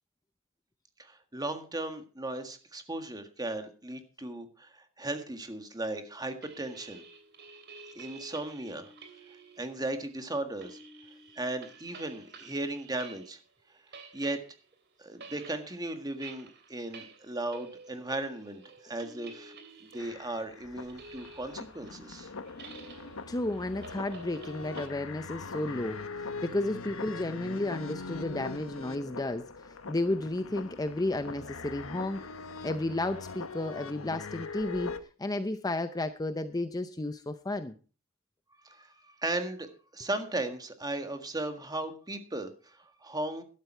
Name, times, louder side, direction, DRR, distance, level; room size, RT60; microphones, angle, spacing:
voice 1, 1.0-7.0 7.9-8.9 9.6-10.8 11.3-13.4 14.1-14.4 15.0-19.6 19.9-22.3 38.6-43.4, right 2 dB, 20° right, 7 dB, 1.7 m, -36 dB
sound 1, 6.4-13.5 13.7-24.9, right 3 dB, 50° right, 2.8 m, -51 dB
sound 2, 20.0-35.0, left 4 dB, 65° left, 1.1 m, -42 dB
voice 2, 23.3-32.3 32.6-37.7, left 2 dB, 15° left, 10 dB, 0.6 m, -33 dB
12.5 x 12.0 x 4.4 m, 0.36 s
head